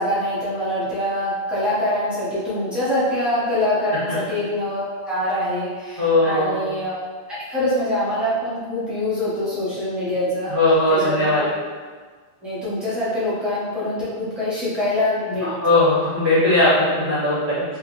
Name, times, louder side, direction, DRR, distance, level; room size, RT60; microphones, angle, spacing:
voice 1, 0.0-7.0 7.3-11.5 12.4-15.8, left 1 dB, ahead, -11 dB, 1.0 m, -24 dB
voice 2, 6.0-6.6 10.5-11.4 15.6-17.6, left 2 dB, 60° right, -11 dB, 1.7 m, -18 dB
3.7 x 2.5 x 2.6 m, 1.5 s
omnidirectional pair, 1.1 m